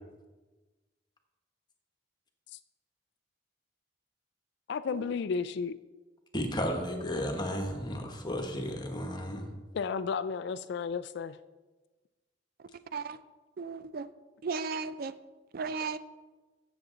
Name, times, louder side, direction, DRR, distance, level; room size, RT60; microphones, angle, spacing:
voice 1, 4.7-5.8 9.7-11.4, left 5 dB, 65° left, 12 dB, 0.3 m, -33 dB
voice 2, 6.3-9.5, equal, 25° left, 4 dB, 1.3 m, -33 dB
voice 3, 13.6-14.1 14.4-15.1 15.5-16.0, right 4 dB, 50° right, 13 dB, 0.4 m, -35 dB
14.0 x 7.1 x 3.9 m, 1.2 s
head